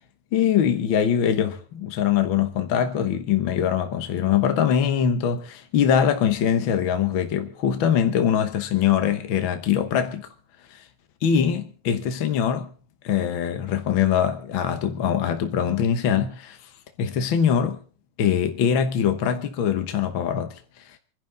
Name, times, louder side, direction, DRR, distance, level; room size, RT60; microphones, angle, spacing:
voice 1, 0.3-10.3 10.7-10.8 11.2-12.7 13.0-16.6 17.0-17.8 18.2-20.6, left 8 dB, 60° left, 1.4 m, -22 dB
27.0 x 11.0 x 3.9 m
omnidirectional pair, 3.5 m